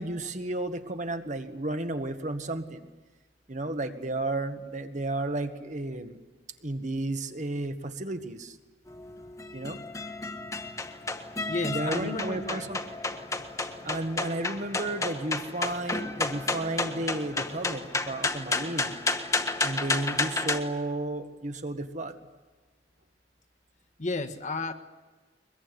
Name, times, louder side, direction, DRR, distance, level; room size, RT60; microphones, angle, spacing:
voice 1, 0.0-2.9 3.5-6.2 6.6-8.6 9.5-9.8 11.6-12.8 13.8-18.9 19.6-22.1, right 2 dB, 45° right, 7 dB, 1.7 m, -33 dB
sound 1, 8.9-20.6, left 3 dB, 20° left, 1.5 m, -32 dB
voice 2, 11.5-12.6 24.0-24.7, left 3 dB, 45° left, 6 dB, 1.6 m, -32 dB
22.5 x 22.5 x 9.8 m, 1.3 s
head